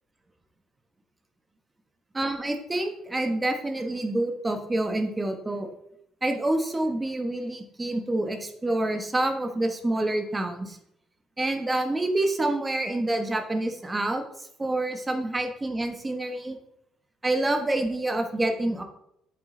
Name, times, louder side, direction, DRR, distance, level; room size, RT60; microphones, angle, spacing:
voice 1, 2.1-5.7 6.2-10.8 11.4-14.2 14.6-16.6 17.2-18.8, right 1 dB, 15° right, 5 dB, 1.2 m, -27 dB
8.6 x 7.4 x 3.8 m, 0.77 s
cardioid pair, 145°, 0 cm